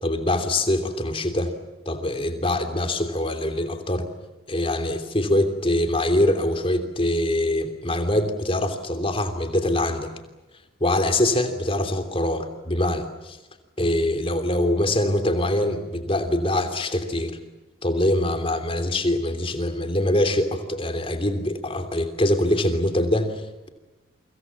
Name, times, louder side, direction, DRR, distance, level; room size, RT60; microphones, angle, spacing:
voice 1, 0.0-1.5 1.8-4.1 4.5-10.1 10.8-13.4 13.8-17.4 17.8-23.7, left 1 dB, 25° left, 7 dB, 3.0 m, -24 dB
29.5 x 25.5 x 7.2 m, 1.1 s
head